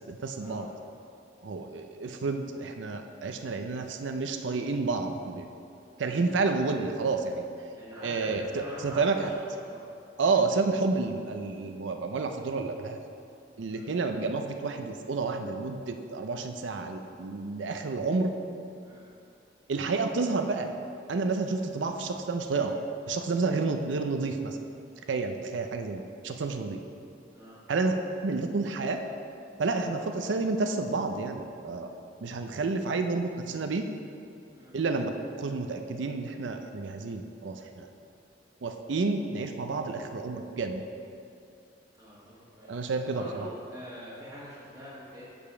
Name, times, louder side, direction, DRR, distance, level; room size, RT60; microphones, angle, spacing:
voice 1, 0.1-0.7 1.4-5.5 6.0-7.4 8.0-9.3 10.2-13.0 13.6-18.3 19.7-20.7 21.1-22.8 23.1-24.6 25.1-26.8 27.7-27.9 28.2-29.0 29.6-31.9 32.2-33.8 34.7-35.1 35.4-37.9 38.6-40.8 42.7-43.5, right 3 dB, 80° right, 6 dB, 0.5 m, -30 dB
voice 2, 5.8-6.1 7.7-9.3 9.6-9.8 13.7-13.9 18.8-19.0 21.8-22.2 23.3-23.5 25.0-25.2 27.3-27.6 29.6-30.2 34.5-34.7 42.0-45.2, equal, 20° right, -12 dB, 1.3 m, -45 dB
6.7 x 5.2 x 6.0 m, 2.6 s
head